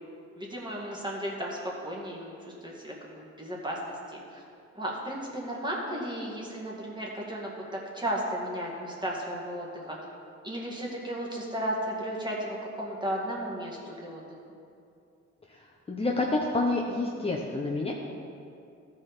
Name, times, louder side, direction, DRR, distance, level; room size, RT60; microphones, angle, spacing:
voice 1, 0.4-4.4 4.7-10.0 10.4-14.2, right 1 dB, 15° right, -3 dB, 2.1 m, -34 dB
voice 2, 15.5-17.9, left 2 dB, 20° left, -2 dB, 0.8 m, -29 dB
14.0 x 5.0 x 4.4 m, 2.5 s
cardioid pair, 90°, 30 cm